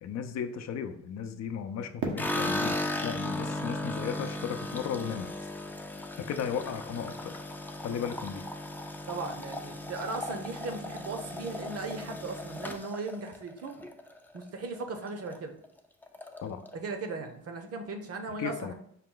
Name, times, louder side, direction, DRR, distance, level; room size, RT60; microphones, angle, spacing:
voice 1, 0.0-5.3 6.2-7.3 7.8-8.4 16.4-16.6 18.4-18.7, left 7 dB, 60° left, 8 dB, 0.5 m, -35 dB
Fireworks, 2.0-5.0, right 4 dB, 85° right, 0.9 m, -41 dB
sound 1, 2.2-14.4 14.8-15.4 15.6-15.7 16.0-16.7, left 1 dB, 5° left, 0.4 m, -36 dB
voice 2, 9.1-13.8 14.3-15.6 16.7-18.7, right 3 dB, 50° right, 6 dB, 0.8 m, -37 dB
5.7 x 2.2 x 3.8 m, 0.67 s
cardioid pair, 90°, 30 cm